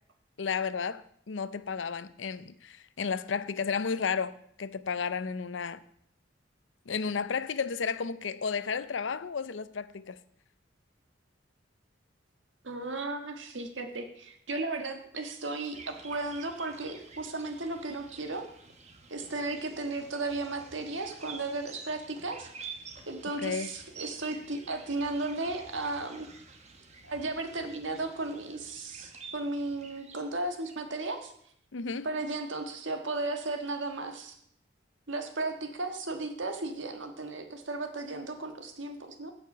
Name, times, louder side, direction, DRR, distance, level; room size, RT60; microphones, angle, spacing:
voice 1, 0.4-5.8 6.9-10.2 23.4-23.7 31.7-32.1, left 5 dB, 80° left, 0.6 m, -33 dB
voice 2, 12.6-18.4 19.1-22.7 23.1-26.3 27.0-31.3 32.0-34.4 35.1-39.3, right 2 dB, 85° right, 1.6 m, -35 dB
sound 1, 15.7-31.1, right 4 dB, 35° right, 1.2 m, -49 dB
16.0 x 5.8 x 5.4 m
head